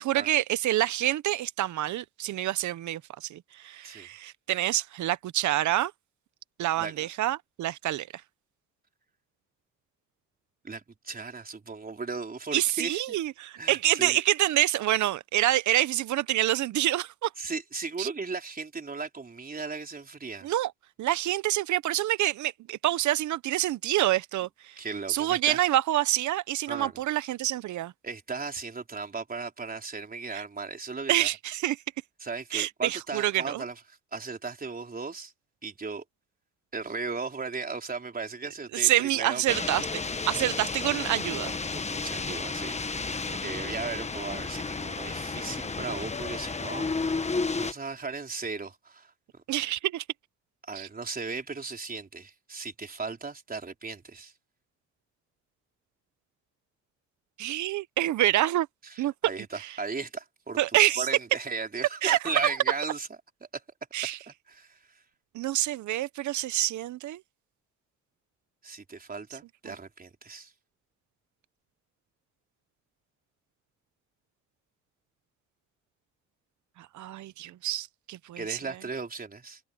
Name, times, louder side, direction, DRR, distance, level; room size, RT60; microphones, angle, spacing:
voice 1, 0.0-5.9 6.6-8.1 12.5-17.3 18.0-18.1 20.4-20.7 21.0-24.7 25.1-27.9 30.3-30.4 31.1-31.8 32.5-33.6 38.7-40.0 40.3-41.5 49.5-50.0 50.8-50.9 57.4-58.7 59.0-59.1 60.6-61.1 62.0-62.5 63.9-64.2 65.3-67.2 76.9-78.6, right 14 dB, 70° right, 0.9 m, -27 dB
voice 2, 10.6-13.2 13.6-14.2 17.4-20.5 24.8-25.6 26.7-27.0 28.0-31.3 32.2-33.8 34.1-35.3 35.6-36.0 36.7-39.7 40.4-40.6 41.7-49.4 50.7-54.3 58.8-60.6 61.0-63.1 63.5-63.6 64.3-64.8 68.6-70.5 78.4-79.6, right 4 dB, 30° right, 4.1 m, -36 dB
sound 1, 39.5-47.7, left 4 dB, 20° left, 1.3 m, -32 dB
cardioid pair, 90°, 30 cm